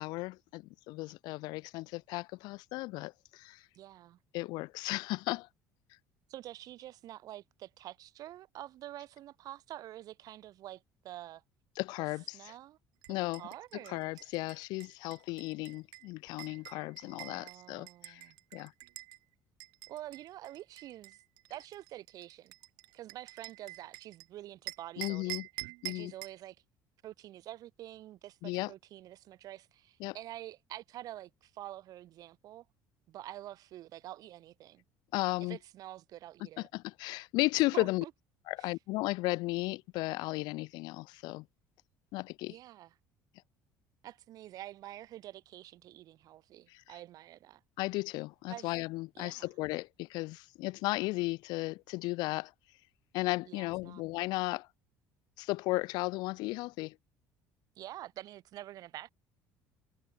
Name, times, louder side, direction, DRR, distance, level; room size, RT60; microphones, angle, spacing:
voice 1, 0.0-3.6 4.3-5.5 11.8-12.5 13.1-13.4 13.9-18.2 18.5-18.7 25.0-25.5 25.8-26.1 28.4-28.7 30.0-30.1 35.1-35.6 36.6-38.0 38.5-41.4 42.1-42.6 46.7-46.8 47.8-52.5 53.1-54.7 55.4-57.0, left 21 dB, 75° left, 0.8 m, -35 dB
voice 2, 3.7-4.2 6.3-11.4 12.3-12.8 13.2-14.3 17.0-18.4 19.9-21.2 21.5-22.5 22.9-25.4 25.9-26.6 27.0-32.7 33.1-34.8 35.5-36.7 37.7-38.1 38.6-38.7 42.5-42.9 44.0-47.6 48.5-48.7 49.1-49.5 53.5-54.0 57.8-59.1, right 14 dB, 60° right, 3.6 m, -47 dB
sound 1, 13.0-19.2 19.6-24.3 24.7-26.4, right 25 dB, 85° right, 1.6 m, -47 dB
cardioid pair, 130°, 7 cm